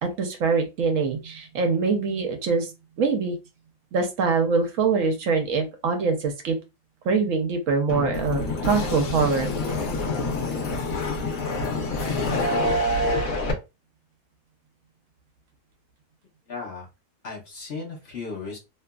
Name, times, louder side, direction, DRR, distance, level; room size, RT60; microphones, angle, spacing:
voice 1, 0.0-2.7 3.0-3.4 3.9-6.6 7.1-9.5, right 4 dB, 70° right, 5 dB, 0.9 m, -24 dB
sound 1, 7.9-13.5, left 2 dB, 75° left, 1.2 m, -26 dB
voice 2, 16.5-16.9 17.2-18.6, left 4 dB, 50° left, -1 dB, 1.0 m, -35 dB
2.8 x 2.4 x 2.2 m, 0.27 s
omnidirectional pair, 1.5 m